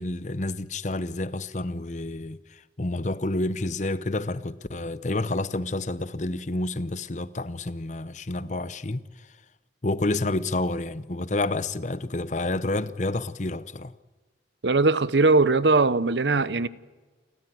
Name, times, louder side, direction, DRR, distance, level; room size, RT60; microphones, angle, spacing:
voice 1, 0.0-2.4 2.8-9.0 9.8-13.9, left 2 dB, 45° left, 0.8 m, -29 dB
voice 2, 14.6-16.7, right 3 dB, 80° right, 0.9 m, -20 dB
29.5 x 14.0 x 9.4 m
head